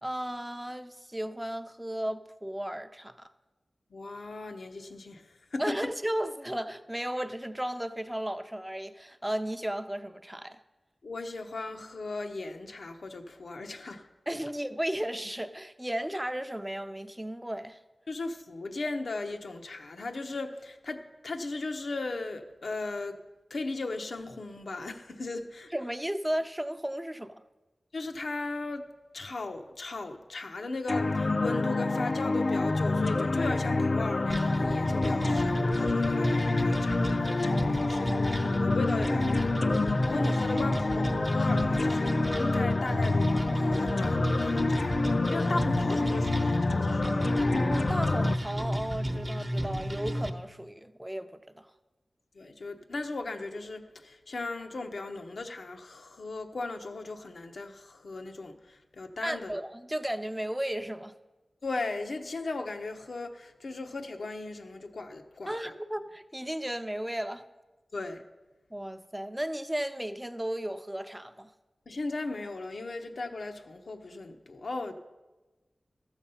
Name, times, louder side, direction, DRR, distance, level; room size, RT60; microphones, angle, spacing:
voice 1, 0.0-3.3 5.6-10.6 14.3-17.8 25.7-27.4 47.5-51.3 51.6-51.7 59.2-61.1 65.5-67.5 68.7-71.5, right 1 dB, 10° right, 0.6 m, -34 dB
voice 2, 3.9-5.9 11.0-14.1 18.1-23.2 23.5-25.7 27.9-28.9 29.1-45.0 45.3-47.0 52.3-59.6 61.6-65.7 67.9-68.2 71.9-74.9, left 3 dB, 75° left, 0.9 m, -37 dB
sound 1, 30.9-48.3, left 3 dB, 55° left, 0.5 m, -27 dB
sound 2, 34.3-50.3, equal, 35° right, 0.9 m, -32 dB
13.5 x 7.1 x 5.6 m
wide cardioid pair, 75°, 0 cm